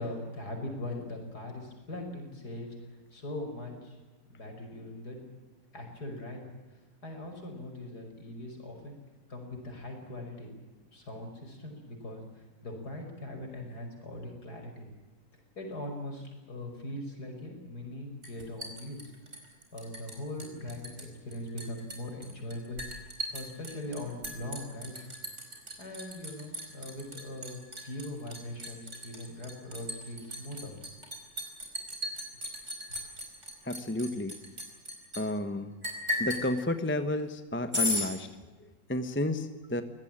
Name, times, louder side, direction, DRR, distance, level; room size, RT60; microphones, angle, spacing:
voice 1, 0.0-4.0 4.3-5.2 5.7-6.5 7.0-9.0 9.3-10.5 10.9-14.8 15.6-19.0 19.7-22.8 23.3-25.1 25.8-30.7, left 1 dB, 55° left, 3 dB, 6.2 m, -41 dB
Liquid, 18.2-20.1 20.4-21.0 21.3-35.2 35.8-36.5 37.7-38.1, left 1 dB, 40° right, 5.1 m, -36 dB
voice 2, 33.6-34.4 35.1-35.7 36.2-38.3 38.6-39.8, left 1 dB, 10° left, 10 dB, 1.0 m, -31 dB
23.5 x 18.0 x 8.9 m, 1.2 s
omnidirectional pair, 2.0 m